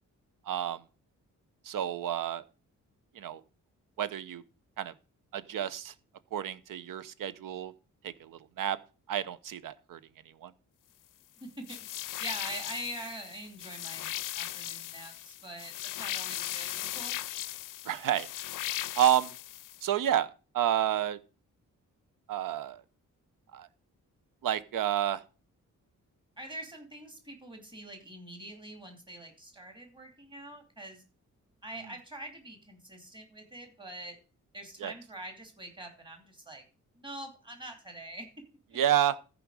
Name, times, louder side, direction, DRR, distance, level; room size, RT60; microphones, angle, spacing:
voice 1, 0.5-0.8 1.6-2.4 3.1-3.4 4.0-4.4 4.8-4.9 5.3-5.9 6.3-7.7 8.0-8.8 9.1-10.0 10.4-10.5 17.8-18.3 19.0-19.3 19.8-20.3 20.5-21.2 22.3-22.8 23.5-23.7 24.4-25.2 34.8-34.9 38.7-39.2, right 11 dB, 85° right, 0.8 m, -29 dB
voice 2, 11.4-11.8 12.2-14.1 14.3-17.1 26.4-31.0 31.6-34.2 34.5-36.6 36.9-38.3, right 1 dB, 15° right, 2.8 m, -44 dB
sound 1, 11.7-19.8, left 14 dB, 75° left, 0.5 m, -38 dB
14.0 x 5.0 x 4.8 m
wide cardioid pair, 125°, 32 cm